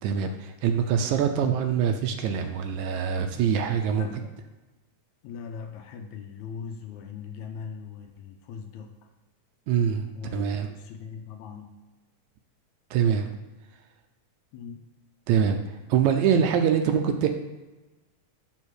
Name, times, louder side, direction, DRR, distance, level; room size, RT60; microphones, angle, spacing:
voice 1, 0.0-4.1 9.7-10.7 12.9-13.3 15.3-17.3, right 7 dB, 80° right, 6 dB, 1.9 m, -24 dB
voice 2, 4.0-4.3 5.2-9.0 10.1-10.4 10.7-11.8 14.5-14.8, left 6 dB, 75° left, 5 dB, 2.0 m, -40 dB
7.3 x 3.6 x 6.4 m, 1.1 s
omnidirectional pair, 3.5 m